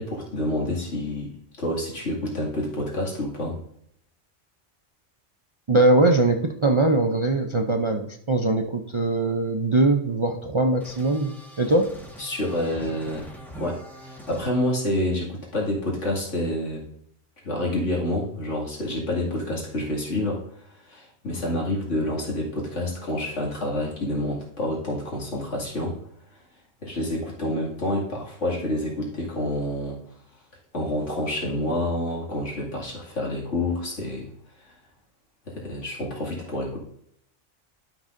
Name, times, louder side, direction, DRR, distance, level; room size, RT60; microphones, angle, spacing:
voice 1, 0.0-3.6 12.2-13.3 13.6-16.8 17.4-20.4 20.9-26.0 26.8-30.0 30.7-34.3 35.5-36.8, left 1 dB, 80° left, -3 dB, 2.6 m, -28 dB
voice 2, 5.7-11.9, right 2 dB, 40° right, 3 dB, 0.4 m, -21 dB
sound 1, 10.8-14.4, equal, ahead, 1.4 m, -43 dB
12.0 x 6.1 x 2.6 m, 0.70 s
omnidirectional pair, 1.2 m